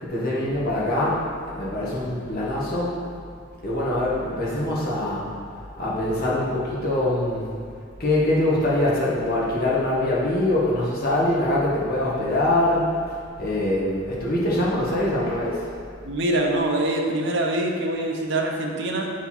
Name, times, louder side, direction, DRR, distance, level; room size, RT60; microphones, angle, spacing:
voice 1, 0.0-3.0 3.6-5.2 5.8-7.5 8.0-13.0 13.4-15.7, left 1 dB, 50° left, -6 dB, 1.6 m, -23 dB
voice 2, 16.0-19.1, right 1 dB, 65° right, 0 dB, 1.0 m, -24 dB
8.0 x 4.7 x 4.4 m, 2.3 s
head